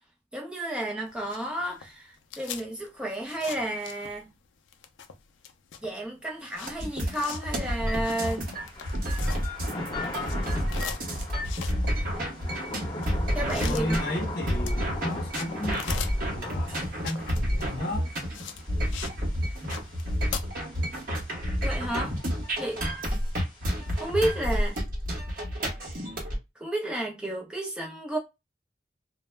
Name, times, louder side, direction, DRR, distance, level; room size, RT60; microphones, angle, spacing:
voice 1, 0.3-4.3 5.8-8.5 13.3-14.0 21.6-22.1 22.6-22.8 24.0-24.8 26.6-28.2, right 1 dB, 5° right, 0.6 m, -31 dB
sound 1, 1.1-4.4 4.7-9.8 10.1-19.2 19.5-20.4, left 8 dB, 80° left, 0.4 m, -41 dB
Thunder / Rain, 6.6-24.8, left 1 dB, 25° left, 0.9 m, -42 dB
sound 2, 6.7-26.4, equal, 50° right, 0.9 m, -30 dB
voice 2, 13.6-18.1, left 1 dB, 55° left, 0.7 m, -34 dB
2.2 x 2.0 x 3.2 m
head